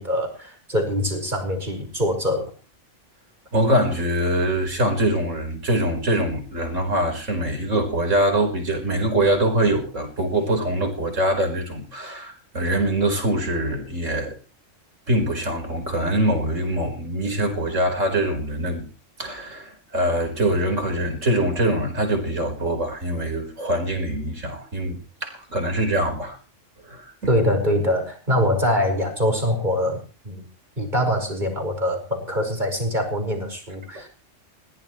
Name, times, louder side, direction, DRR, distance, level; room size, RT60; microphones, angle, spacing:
voice 1, 0.0-2.5 27.3-30.0 30.2-30.4 30.8-34.1, equal, 35° right, 4 dB, 5.6 m, -23 dB
voice 2, 3.5-14.4 15.1-18.9 19.2-26.4 26.8-27.1 34.0-34.1, right 1 dB, 80° right, 5 dB, 5.1 m, -23 dB
21.5 x 17.5 x 3.2 m, 0.35 s
omnidirectional pair, 1.3 m